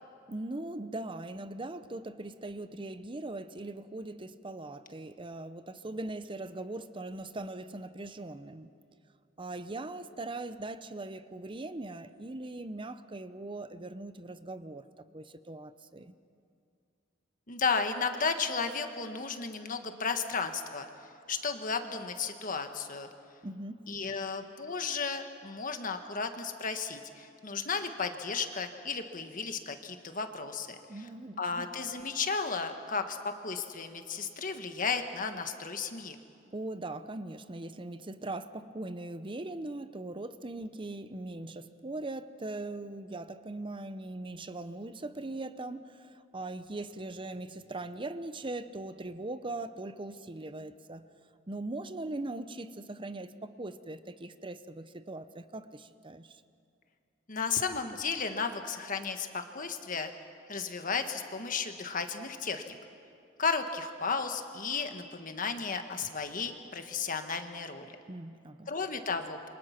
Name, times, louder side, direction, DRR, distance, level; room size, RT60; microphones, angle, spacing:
voice 1, 0.3-8.7 9.4-16.1 23.4-23.8 30.9-31.7 36.5-51.1 51.5-56.4 68.1-68.7, right 2 dB, 25° right, 12 dB, 0.8 m, -40 dB
voice 2, 17.5-20.9 21.3-23.1 23.9-30.8 31.4-33.2 33.4-36.2 57.3-60.1 60.5-62.8 63.4-68.0 68.7-69.5, left 5 dB, 45° left, 6 dB, 1.5 m, -34 dB
28.5 x 24.5 x 5.9 m, 2.4 s
head